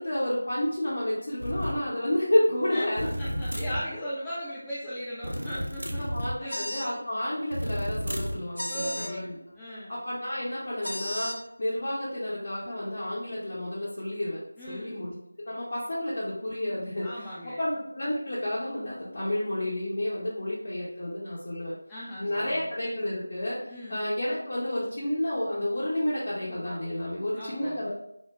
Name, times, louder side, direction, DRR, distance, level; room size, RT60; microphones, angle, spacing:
voice 1, 0.0-3.1 6.0-9.3 9.9-14.4 14.7-15.1 15.4-17.2 17.6-21.7 22.2-23.6 23.9-27.9, left 1 dB, 45° left, -8 dB, 0.7 m, -30 dB
sound 1, 1.4-1.8 3.0-3.9 5.2-6.4 7.5-8.5, equal, 85° right, 0.5 m, -32 dB
voice 2, 3.2-6.0 6.4-6.7 8.7-9.9 14.6-15.0 17.0-17.6 21.9-22.7 23.7-24.1 27.4-27.9, equal, 10° left, -10 dB, 0.3 m, -38 dB
sound 2, 6.5-6.9 8.6-9.1 10.8-11.4, equal, 80° left, 0.4 m, -34 dB
2.1 x 2.0 x 3.4 m, 0.78 s
figure-of-eight pair, 165°, 0 cm